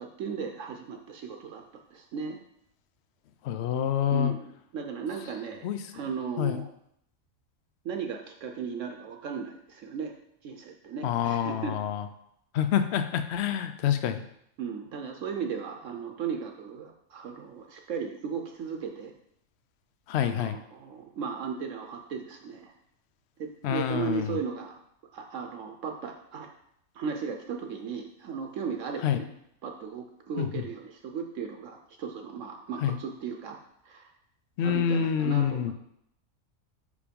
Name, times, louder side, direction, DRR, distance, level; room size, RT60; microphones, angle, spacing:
voice 1, 0.0-2.4 4.1-6.7 7.8-10.1 10.4-11.8 14.6-19.1 20.1-22.7 23.4-24.8 25.1-26.5 26.9-29.3 29.6-33.6 33.8-34.1 34.6-35.7, right 6 dB, 70° right, 3 dB, 1.0 m, -36 dB
voice 2, 3.4-4.3 5.6-5.8 6.4-6.6 11.0-12.0 12.5-14.2 20.1-20.6 23.6-24.4 29.0-29.2 30.4-30.5 32.8-33.0 34.6-35.7, left 9 dB, 60° left, 10 dB, 0.7 m, -27 dB
5.2 x 4.9 x 5.1 m, 0.74 s
omnidirectional pair, 1.4 m